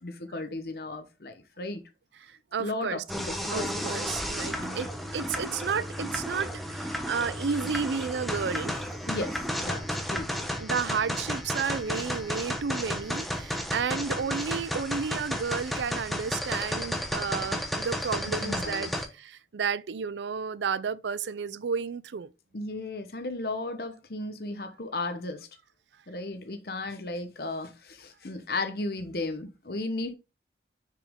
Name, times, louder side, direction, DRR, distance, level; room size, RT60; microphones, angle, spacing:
voice 1, 0.0-1.8 2.6-3.9 4.5-4.9 9.1-10.3 18.3-18.9 22.5-25.5 26.1-30.1, left 2 dB, 60° left, 0.9 m, -35 dB
voice 2, 2.2-3.0 3.5-9.0 10.6-22.3, right 6 dB, 80° right, 0.4 m, -32 dB
sound 1, 3.1-19.1, equal, ahead, 0.9 m, -33 dB
6.6 x 5.1 x 3.5 m
head